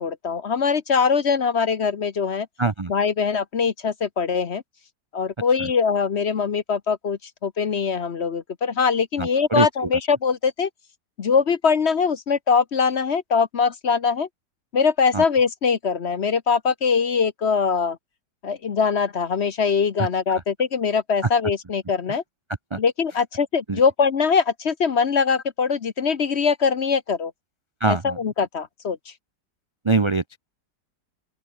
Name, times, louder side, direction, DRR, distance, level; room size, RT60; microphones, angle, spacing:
voice 1, 0.0-2.5 2.9-4.6 5.1-10.7 11.2-14.3 14.7-18.0 18.4-22.2 22.8-27.3 27.8-29.0, left 5 dB, 45° left, 1.0 m, -22 dB
voice 2, 2.6-2.9 9.2-9.7 15.1-15.2 20.0-20.1 22.7-22.8 23.7-23.8 27.8-28.2 29.8-30.4, right 3 dB, 45° right, 0.4 m, -23 dB
open air
omnidirectional pair, 1.9 m